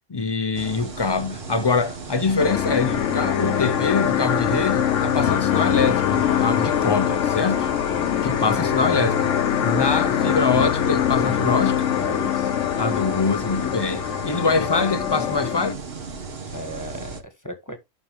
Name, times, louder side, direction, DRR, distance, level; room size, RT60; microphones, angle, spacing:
voice 1, 0.1-7.7 8.2-9.3 9.6-11.9 12.8-15.8, left 4 dB, 40° left, 0.3 m, -24 dB
sound 1, 0.5-17.2, right 4 dB, 55° right, 1.4 m, -36 dB
sound 2, 2.4-15.7, left 10 dB, 75° left, 1.0 m, -23 dB
voice 2, 7.8-8.4 12.0-12.6 16.5-17.8, equal, 15° left, 1.3 m, -37 dB
8.0 x 6.2 x 3.5 m
omnidirectional pair, 1.3 m